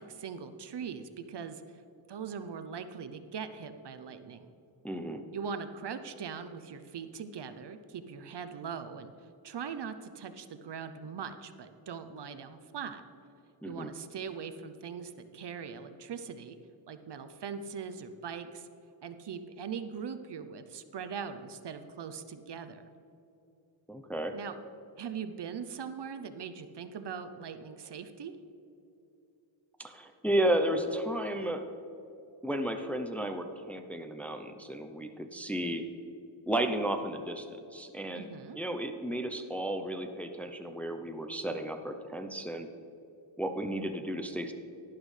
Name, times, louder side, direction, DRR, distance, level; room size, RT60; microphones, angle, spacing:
voice 1, 0.0-1.6 2.1-4.5 5.3-13.0 13.7-16.6 16.9-18.7 19.0-22.8 24.3-24.6 25.0-28.3 38.1-38.6, right 6 dB, 55° right, 10 dB, 0.7 m, -41 dB
voice 2, 4.8-5.2 13.6-13.9 23.9-24.3 29.8-31.6 32.4-35.8 36.5-38.3 38.6-42.7 43.4-44.5, right 1 dB, 5° left, 6 dB, 0.5 m, -33 dB
11.5 x 11.5 x 3.3 m, 2.8 s
wide cardioid pair, 110°, 48 cm